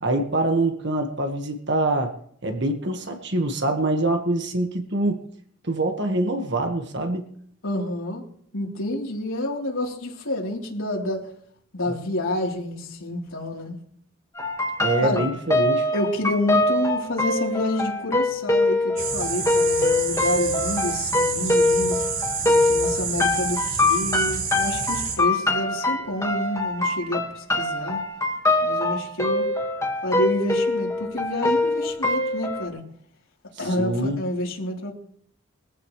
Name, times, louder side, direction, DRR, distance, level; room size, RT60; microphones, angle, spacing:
voice 1, 0.0-2.1 2.4-5.2 5.6-7.3 14.8-15.9 33.8-34.2, right 2 dB, 55° right, 4 dB, 1.7 m, -24 dB
voice 2, 7.6-8.2 8.5-11.3 11.7-13.8 15.0-15.2 15.9-22.0 22.5-28.0 28.6-29.5 30.0-32.8 33.6-34.9, left 1 dB, 80° left, -1 dB, 3.8 m, -28 dB
sound 1, 14.4-32.7, left 2 dB, 15° left, 1.8 m, -23 dB
sound 2, 19.0-25.2, right 5 dB, 80° right, 7.2 m, -28 dB
22.5 x 15.0 x 3.3 m, 0.66 s
head